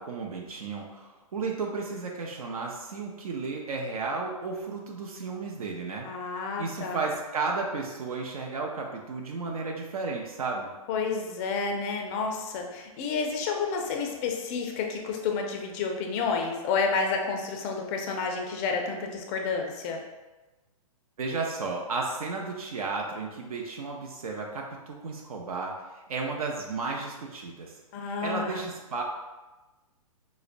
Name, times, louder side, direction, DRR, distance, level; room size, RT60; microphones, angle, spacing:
voice 1, 0.0-6.1 6.4-10.7 21.2-29.0, right 4 dB, 80° right, 0 dB, 0.6 m, -33 dB
voice 2, 6.0-7.1 10.9-20.0 27.9-28.6, left 5 dB, 25° left, 2 dB, 0.4 m, -30 dB
4.7 x 2.1 x 2.5 m, 1.1 s
hypercardioid pair, 145°, 18 cm